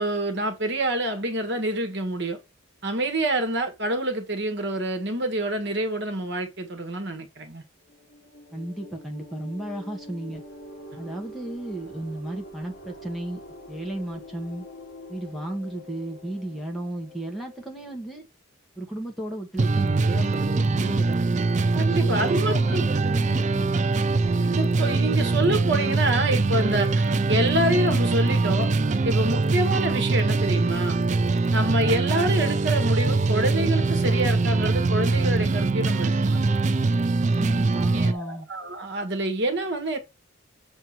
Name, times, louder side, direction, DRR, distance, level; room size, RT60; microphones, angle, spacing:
voice 1, 0.0-2.4 2.8-7.6 21.7-23.1 24.4-28.7 29.0-31.0 31.5-36.5 37.9-40.0, right 1 dB, 55° right, 1.6 m, -27 dB
sound 1, 7.9-18.1, equal, 50° left, 1.9 m, -45 dB
voice 2, 8.5-10.4 11.0-13.4 13.7-14.7 15.1-18.3 18.8-21.3 21.8-23.9 37.4-38.5, right 1 dB, ahead, 1.6 m, -34 dB
sound 2, 19.6-38.1, right 3 dB, 35° right, 0.4 m, -23 dB
7.4 x 3.5 x 5.9 m
head